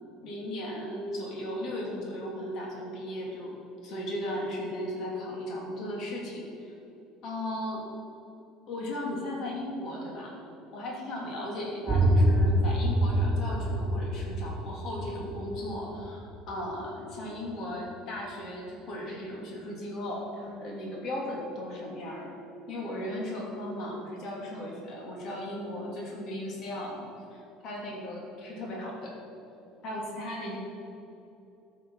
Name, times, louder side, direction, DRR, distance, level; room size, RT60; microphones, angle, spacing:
voice 1, 0.0-3.6 3.8-6.7 7.2-7.9 8.7-10.4 10.7-22.4 22.7-29.1 29.8-30.6, left 1 dB, 45° left, -2 dB, 2.7 m, -36 dB
sound 1, 11.9-17.5, right 1 dB, 5° right, 2.8 m, -27 dB
13.5 x 7.4 x 5.5 m, 2.8 s
cardioid pair, 160°, 0 cm